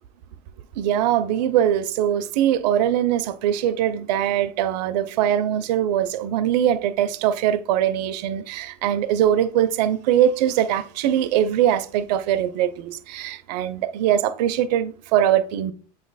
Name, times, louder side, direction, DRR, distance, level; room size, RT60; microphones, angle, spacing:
voice 1, 0.8-15.7, right 10 dB, 80° right, 0.6 m, -22 dB
7.7 x 3.1 x 4.0 m
supercardioid pair, 105°, 21 cm